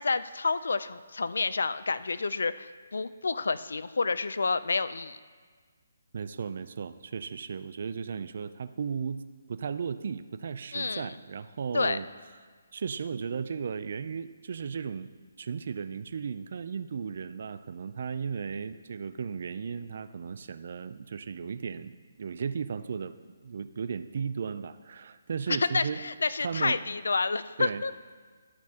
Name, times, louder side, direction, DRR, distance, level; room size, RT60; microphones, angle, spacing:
voice 1, 0.0-5.2 10.7-11.1 11.7-12.0 25.5-27.9, left 4 dB, 80° left, 15 dB, 0.4 m, -29 dB
voice 2, 6.1-9.2 9.5-12.1 12.7-15.1 15.4-26.0 26.4-26.8 27.6-27.8, right 6 dB, 40° right, 13 dB, 0.3 m, -35 dB
12.0 x 8.3 x 2.8 m, 1.5 s
hypercardioid pair, 175°, 0 cm